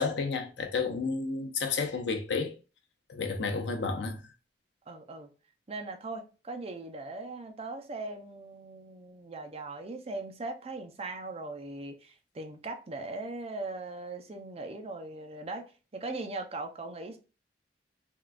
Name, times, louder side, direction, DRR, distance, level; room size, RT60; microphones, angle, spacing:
voice 1, 0.0-2.5 3.1-4.3, left 4 dB, 80° left, 0.6 m, -31 dB
voice 2, 4.9-5.3 5.7-15.6 15.9-17.2, right 2 dB, 35° right, 0.5 m, -39 dB
3.6 x 2.3 x 2.4 m
head